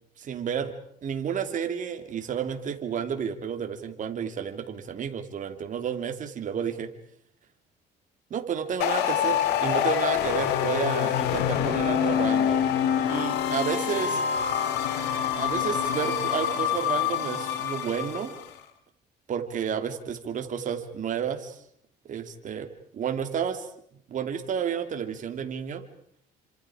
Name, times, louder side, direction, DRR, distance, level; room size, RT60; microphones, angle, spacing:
voice 1, 0.2-0.7 1.0-6.9 8.3-12.7 13.1-14.2 15.3-18.3 19.3-21.6 22.0-23.7 24.1-25.8, right 7 dB, 50° right, 6 dB, 2.9 m, -31 dB
sound 1, 8.8-18.4, left 9 dB, 90° left, 2.5 m, -26 dB
28.5 x 26.5 x 5.0 m, 0.66 s
cardioid pair, 110°, 17 cm